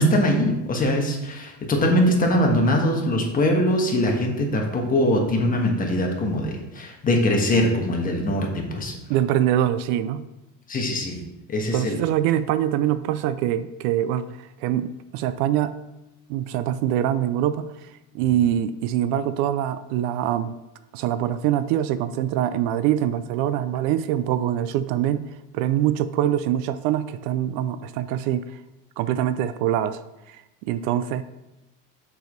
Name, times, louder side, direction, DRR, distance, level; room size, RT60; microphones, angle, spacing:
voice 1, 0.0-8.9 10.7-11.2 11.5-12.0, left 1 dB, 20° left, 1 dB, 1.3 m, -22 dB
voice 2, 9.1-10.3 11.7-15.8 16.3-17.9 18.1-20.6 20.9-28.6 29.0-30.0 30.3-31.2, right 11 dB, 70° right, 13 dB, 0.5 m, -24 dB
6.6 x 4.9 x 5.1 m, 0.96 s
cardioid pair, 140°, 38 cm